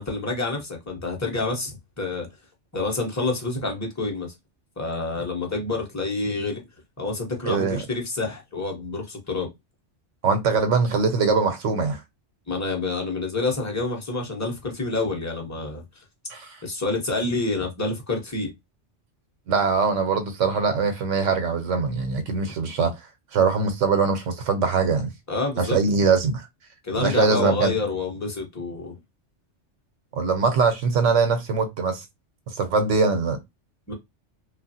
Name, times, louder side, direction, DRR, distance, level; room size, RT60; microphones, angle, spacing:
voice 1, 0.0-2.3 2.7-4.3 4.8-6.6 7.0-9.5 12.5-15.8 16.6-18.5 25.3-25.8 26.8-28.9 33.9-34.0, left 3 dB, 15° left, 0.7 m, -28 dB
voice 2, 7.5-7.8 10.2-12.0 16.3-16.6 19.5-23.0 23.3-25.1 25.6-26.4 27.0-27.7 30.1-32.0 32.5-33.4, right 4 dB, 85° right, 0.9 m, -22 dB
3.0 x 2.4 x 2.6 m
omnidirectional pair, 1.2 m